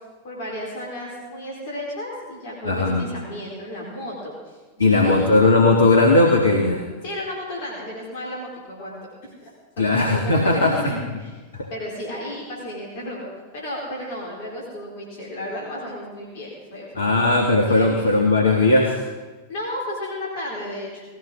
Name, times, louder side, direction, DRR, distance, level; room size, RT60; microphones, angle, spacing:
voice 1, 0.2-5.3 7.0-11.3 11.7-13.3 13.5-17.2 17.7-18.1 19.5-21.0, left 1 dB, 50° left, -4 dB, 4.3 m, -33 dB
voice 2, 2.7-3.1 4.8-6.8 9.8-10.7 11.5-11.7 16.9-19.0, left 2 dB, 75° left, 1 dB, 1.7 m, -18 dB
19.5 x 15.5 x 3.8 m, 1.3 s
figure-of-eight pair, 90°, 0 cm